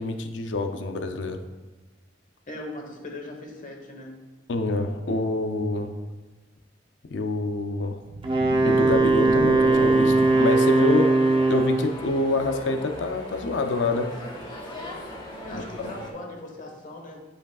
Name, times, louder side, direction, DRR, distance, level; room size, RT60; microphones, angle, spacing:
voice 1, 0.0-1.4 4.5-5.9 7.1-8.0 8.6-14.1 15.5-15.6, left 2 dB, 85° left, 6 dB, 0.5 m, -27 dB
voice 2, 2.5-4.1 15.4-17.2, left 1 dB, 45° left, 2 dB, 1.1 m, -39 dB
sound 1, 8.0-10.6, right 4 dB, 60° right, 0.3 m, -31 dB
Wind instrument woodwind instrument, 8.2-12.0, right 2 dB, 30° right, 0.7 m, -20 dB
sound 2, 9.6-16.1, left 1 dB, 25° left, 1.2 m, -39 dB
9.6 x 5.1 x 2.3 m, 1.2 s
head